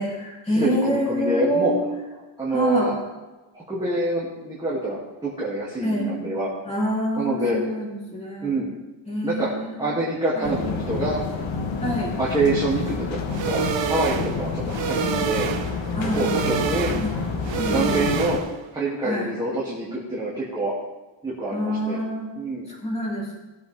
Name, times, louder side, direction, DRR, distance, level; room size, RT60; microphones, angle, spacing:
voice 1, 0.0-1.8 2.5-3.0 5.8-6.1 6.6-8.6 9.1-9.9 10.3-10.6 11.8-12.1 15.9-16.4 17.0-17.2 17.5-18.1 19.0-19.3 21.5-22.3 22.7-23.4, equal, 10° left, -4 dB, 3.4 m, -26 dB
voice 2, 0.6-1.7 2.4-2.9 3.5-6.5 7.2-7.6 8.4-8.7 9.2-9.5 9.8-11.2 12.2-13.6 13.9-15.5 16.1-16.9 17.6-18.4 18.7-20.7 21.2-22.0 22.4-22.7, right 2 dB, 10° right, -8 dB, 2.6 m, -26 dB
sound 1, 10.4-18.4, left 4 dB, 65° left, 1.5 m, -28 dB
sound 2, 13.3-18.7, right 8 dB, 60° right, 1.1 m, -28 dB
18.5 x 8.1 x 3.5 m, 1.1 s
wide cardioid pair, 155°, 50 cm